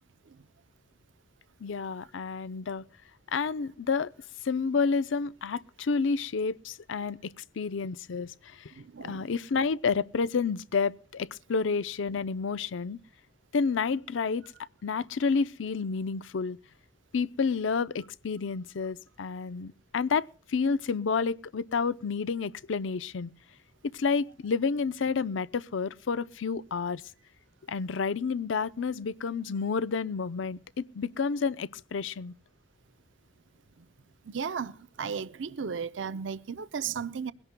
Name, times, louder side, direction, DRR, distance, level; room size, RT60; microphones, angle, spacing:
voice 1, 1.6-2.8 3.3-4.1 4.4-8.7 9.0-13.0 13.5-14.4 14.8-16.6 17.1-23.3 23.9-27.0 27.7-32.3, left 5 dB, 85° left, 0.5 m, -30 dB
voice 2, 8.7-9.3 33.8-33.9 34.2-37.3, right 6 dB, 80° right, 0.5 m, -35 dB
22.0 x 17.0 x 2.2 m
head